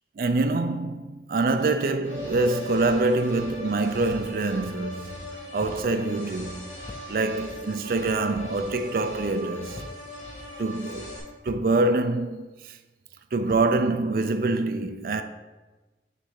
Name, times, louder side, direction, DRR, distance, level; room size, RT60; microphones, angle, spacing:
voice 1, 0.2-5.2 5.5-6.6 7.1-9.8 10.6-11.2 11.4-12.8 13.3-15.2, right 2 dB, 55° right, 0.4 m, -25 dB
sound 1, 2.0-11.2, left 1 dB, 40° left, 1.6 m, -39 dB
sound 2, 4.1-4.5 5.6-5.9 6.9-7.3 8.3-8.7 9.7-10.2 11.5-11.8 13.5-13.8, left 1 dB, 25° left, 0.3 m, -43 dB
6.5 x 3.3 x 4.7 m
head